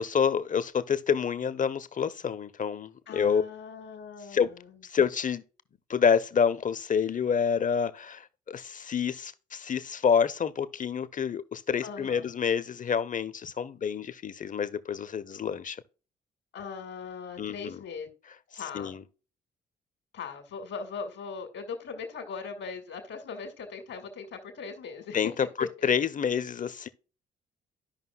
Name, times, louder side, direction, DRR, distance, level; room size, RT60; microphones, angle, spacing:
voice 1, 0.0-3.4 4.3-4.5 4.8-5.4 5.9-15.8 17.4-17.8 18.7-19.0 25.1-25.3 25.6-26.9, left 7 dB, 40° left, 0.8 m, -28 dB
voice 2, 3.1-4.8 11.8-12.3 16.5-18.1 18.5-18.9 20.1-25.2 25.8-25.9, left 5 dB, 70° left, 1.9 m, -40 dB
13.5 x 5.4 x 2.3 m
hypercardioid pair, 45°, 21 cm